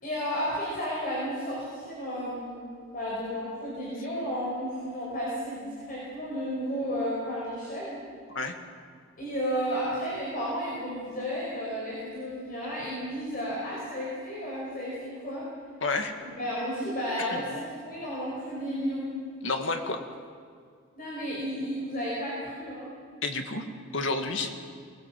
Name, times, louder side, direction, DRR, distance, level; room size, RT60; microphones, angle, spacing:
voice 1, 0.0-8.0 9.2-15.5 16.2-19.1 21.0-22.9, equal, 45° left, -5 dB, 5.3 m, -33 dB
voice 2, 15.8-16.1 17.3-17.4 19.4-20.0 23.2-23.6 23.9-24.5, left 3 dB, 70° left, 5 dB, 2.1 m, -29 dB
23.5 x 20.5 x 7.7 m, 2.1 s
head